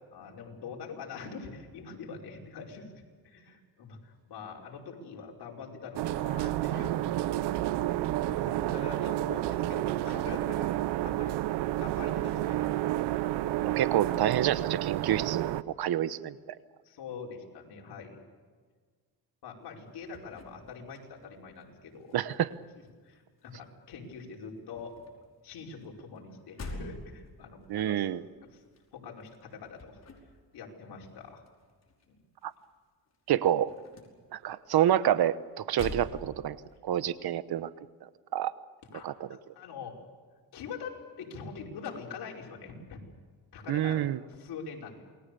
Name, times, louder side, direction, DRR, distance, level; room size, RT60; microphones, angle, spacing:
voice 1, 0.1-7.7 8.0-11.4 11.8-12.8 16.8-18.2 19.4-22.2 22.8-25.0 25.4-28.1 28.5-28.6 28.9-30.0 30.5-31.4 32.1-32.2 35.7-35.9 38.9-40.0 40.5-43.0 43.5-45.0, left 5 dB, 75° left, -1 dB, 5.5 m, -44 dB
sound 1, 6.0-15.6, right 14 dB, 90° right, 0.8 m, -30 dB
voice 2, 13.8-15.5 15.8-16.3 22.1-22.5 27.7-28.2 33.3-33.7 34.3-36.6 36.8-37.7 38.3-38.5 39.0-39.1 43.7-44.2, right 11 dB, 65° right, 15 dB, 1.1 m, -27 dB
sound 2, 19.6-21.6 21.9-23.8 24.1-32.8 33.1-36.8, left 2 dB, 40° left, 5.3 m, -48 dB
28.5 x 21.0 x 7.0 m, 1.5 s
cardioid pair, 105°, 40 cm